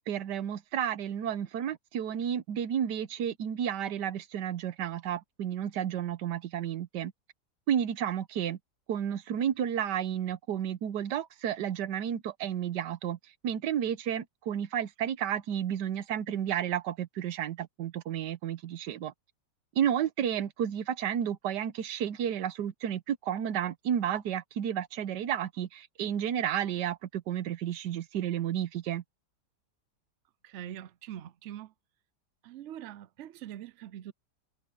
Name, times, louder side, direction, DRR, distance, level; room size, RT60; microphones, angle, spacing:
voice 1, 0.1-7.1 7.7-8.6 8.9-13.2 13.4-19.1 19.7-29.0, right 9 dB, 90° right, 1.5 m, -32 dB
voice 2, 30.4-31.7 32.4-34.1, right 11 dB, 70° right, 0.7 m, -43 dB
omnidirectional pair, 1.8 m